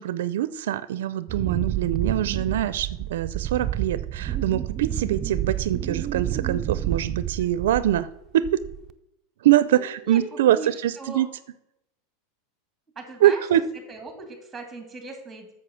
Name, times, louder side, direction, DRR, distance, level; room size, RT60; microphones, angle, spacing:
voice 1, 0.0-8.1 8.3-8.6 9.4-11.3 13.2-13.6, right 12 dB, 80° right, 16 dB, 0.5 m, -23 dB
Wind, 1.3-8.1 8.4-8.9, right 11 dB, 30° right, 0.5 m, -29 dB
voice 2, 9.7-11.3 13.0-13.5 13.9-15.5, right 2 dB, 10° right, 5 dB, 2.3 m, -39 dB
8.4 x 6.7 x 6.9 m, 0.85 s
supercardioid pair, 150°, 0 cm